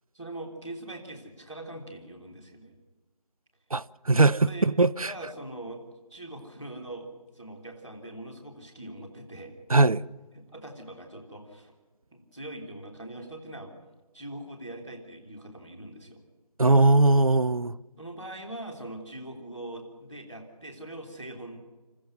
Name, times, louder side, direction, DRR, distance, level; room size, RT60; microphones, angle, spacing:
voice 1, 0.1-2.7 4.2-4.7 5.0-5.8 6.1-7.1 7.3-9.5 10.3-11.7 12.1-13.7 14.1-16.2 18.0-21.6, right 1 dB, 5° right, 1.1 m, -42 dB
voice 2, 3.7-5.1 9.7-10.0 16.6-17.8, right 2 dB, 60° right, 0.6 m, -20 dB
28.0 x 14.5 x 6.3 m
figure-of-eight pair, 165°, 21 cm